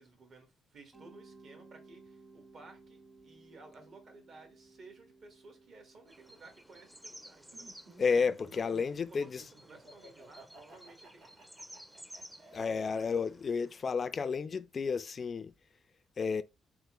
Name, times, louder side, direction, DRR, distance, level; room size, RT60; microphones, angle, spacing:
voice 1, 0.0-7.7 8.5-8.8 9.1-11.3 13.1-13.2, right 3 dB, 60° right, 1.5 m, -56 dB
Mallet percussion, 0.9-9.7, right 3 dB, 25° right, 0.9 m, -60 dB
sound 1, 6.1-13.9, equal, 10° right, 0.5 m, -54 dB
Laughter, 7.5-13.5, right 2 dB, 85° right, 2.2 m, -55 dB
voice 2, 8.0-9.5 12.5-15.5 16.2-16.4, left 5 dB, 45° left, 0.3 m, -31 dB
3.6 x 3.3 x 3.0 m
cardioid pair, 90°, 0 cm